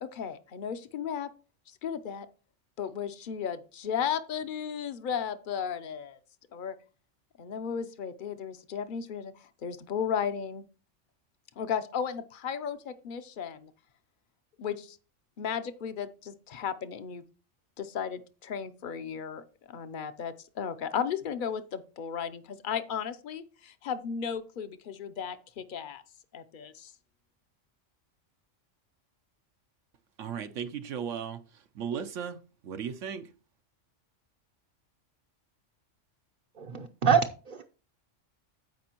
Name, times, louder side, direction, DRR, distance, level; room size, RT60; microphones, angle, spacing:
voice 1, 0.0-1.3 1.8-2.3 2.8-6.2 6.5-6.8 7.4-9.3 9.6-10.6 11.6-13.7 14.6-15.0 15.4-17.2 17.8-26.0 26.3-26.9, left 7 dB, 50° left, 0.7 m, -35 dB
voice 2, 30.2-31.4 31.8-32.4 32.6-33.2, right 7 dB, 80° right, 1.0 m, -35 dB
voice 3, 36.6-37.2 37.5-37.6, right 7 dB, 50° right, 0.7 m, -25 dB
15.0 x 5.2 x 2.9 m
omnidirectional pair, 1.3 m